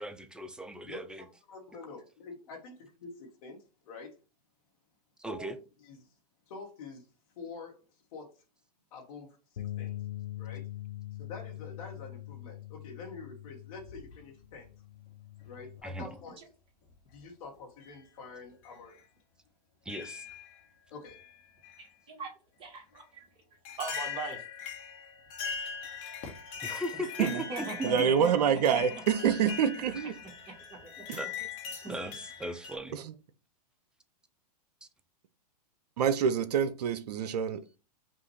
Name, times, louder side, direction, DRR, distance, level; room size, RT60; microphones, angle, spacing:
voice 1, 0.0-1.2 5.2-5.5 15.8-16.1 19.9-20.2 26.6-27.3 27.6-28.1 29.6-29.7 31.2-31.3 31.9-33.0 34.8-34.9, right 1 dB, 5° right, 0.4 m, -38 dB
voice 2, 0.9-3.6 3.8-4.2 5.3-5.5 5.8-6.1 6.5-7.1 7.3-7.8 8.1-8.4 8.9-10.0 10.4-10.7 11.2-14.7 15.4-16.4 17.1-19.0 20.9-21.2, left 4 dB, 60° left, 1.2 m, -46 dB
Bass guitar, 9.6-15.8, left 14 dB, 85° left, 0.5 m, -43 dB
sound 1, 13.9-14.6 15.8-15.9 16.9-17.2 17.8-18.0 18.6-18.8 19.9-20.6 21.0-21.8 22.9-23.0 23.6-32.8, left 6 dB, 40° left, 1.2 m, -41 dB
voice 3, 21.8-22.3 22.6-23.3 23.8-24.4 27.2-29.0 30.5-30.6 30.8-30.9 31.8-31.9, right 3 dB, 25° right, 1.6 m, -40 dB
voice 4, 27.8-30.1 31.1-31.2 32.9-33.1 36.0-37.8, right 7 dB, 70° right, 0.5 m, -27 dB
5.4 x 2.5 x 3.1 m
hypercardioid pair, 115°, 21 cm